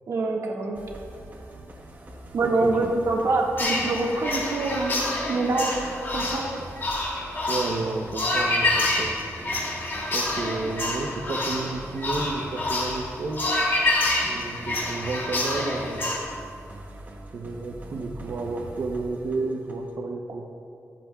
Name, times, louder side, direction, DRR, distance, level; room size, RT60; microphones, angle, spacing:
voice 1, 0.1-0.8 2.3-6.5, right 2 dB, 70° right, -1 dB, 1.6 m, -25 dB
sound 1, 0.7-20.0, right 1 dB, 35° right, 1.2 m, -43 dB
voice 2, 2.4-2.9 7.4-9.1 10.1-13.5 14.3-16.3 17.3-20.5, right 3 dB, 55° right, -1 dB, 0.7 m, -31 dB
sound 2, 3.6-16.2, left 2 dB, 45° left, 2.5 m, -27 dB
23.5 x 7.8 x 2.3 m, 2.7 s
wide cardioid pair, 160°, 5 cm